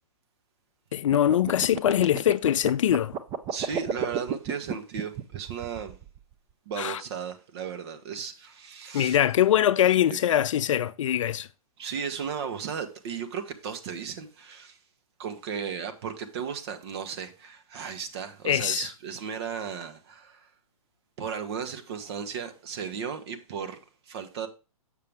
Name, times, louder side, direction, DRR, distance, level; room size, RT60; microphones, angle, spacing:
voice 1, 0.9-3.1 6.8-7.0 8.9-11.5 18.5-18.9, left 11 dB, 55° left, 0.5 m, -23 dB
sound 1, 1.1-6.3, right 7 dB, 20° right, 0.5 m, -32 dB
voice 2, 3.5-6.0 6.7-9.2 10.1-10.2 11.8-14.8 15.2-20.4 21.2-23.8 24.1-24.5, right 7 dB, 45° right, 1.3 m, -35 dB
6.8 x 6.7 x 3.5 m
hypercardioid pair, 140°, 19 cm